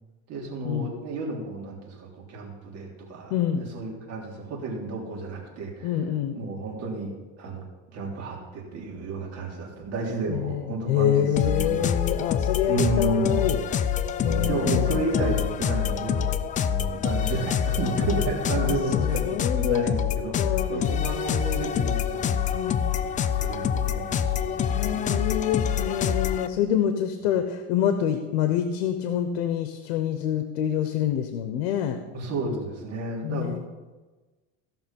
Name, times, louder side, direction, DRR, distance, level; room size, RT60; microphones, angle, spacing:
voice 1, 0.3-5.9 6.3-7.1 7.4-7.6 7.9-11.9 12.7-13.5 14.2-16.3 16.6-22.6 23.1-25.2 32.1-33.6, right 2 dB, 50° right, -2 dB, 3.3 m, -31 dB
voice 2, 3.3-3.6 5.8-6.4 10.3-13.6 14.2-15.1 18.6-19.9 20.4-20.7 22.5-22.8 24.7-32.0 33.2-33.6, left 10 dB, 85° left, 8 dB, 1.0 m, -26 dB
sound 1, 11.3-26.5, left 8 dB, 25° left, 0.4 m, -26 dB
15.5 x 6.0 x 5.4 m, 1.2 s
cardioid pair, 140°, 32 cm